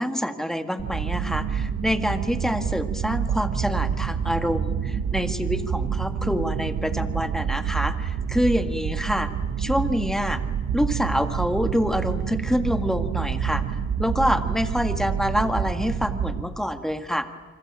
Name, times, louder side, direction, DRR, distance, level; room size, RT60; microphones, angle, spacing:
voice 1, 0.0-9.3 9.6-10.4 10.7-13.6 14.0-17.3, equal, ahead, 8 dB, 1.8 m, -26 dB
sound 1, 0.8-16.4, right 7 dB, 60° right, 1.8 m, -28 dB
26.0 x 25.0 x 8.7 m, 1.5 s
cardioid pair, 90°, 30 cm